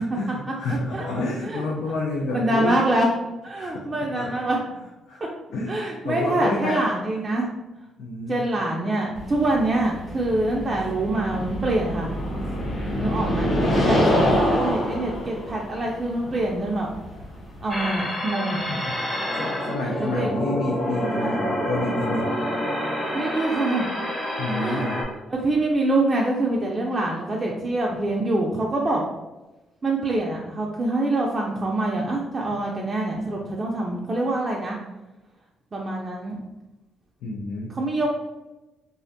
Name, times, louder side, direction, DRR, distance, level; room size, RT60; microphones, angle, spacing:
voice 1, 0.0-2.8 3.5-3.7 4.1-4.3 5.1-5.2 5.5-6.9 8.0-8.4 12.9-13.3 18.7-22.3 24.4-25.1 37.2-37.7, left 2 dB, 85° left, -2 dB, 0.4 m, -29 dB
voice 2, 0.7-1.1 1.4-1.6 2.3-3.1 3.4-4.6 5.7-7.5 8.3-12.1 13.0-16.9 17.6-18.6 19.8-20.5 21.2-21.4 23.1-24.0 24.6-24.9 25.3-29.0 29.8-34.8 35.7-36.4 37.7-38.1, right 2 dB, 35° right, -2 dB, 0.4 m, -25 dB
sound 1, 9.1-18.0, left 1 dB, 65° left, 1.0 m, -25 dB
sound 2, 17.7-25.0, equal, 15° left, 0.8 m, -28 dB
2.4 x 2.1 x 2.6 m, 1.1 s
supercardioid pair, 70°, 0 cm